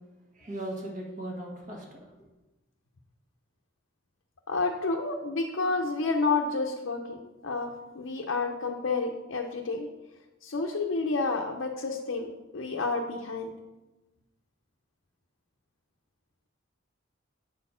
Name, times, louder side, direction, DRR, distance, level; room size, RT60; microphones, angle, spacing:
voice 1, 0.3-2.1, right 1 dB, 40° right, -1 dB, 1.4 m, -38 dB
voice 2, 4.5-9.9 10.4-13.5, left 3 dB, 75° left, 1 dB, 0.6 m, -30 dB
7.5 x 4.2 x 5.6 m, 1.1 s
head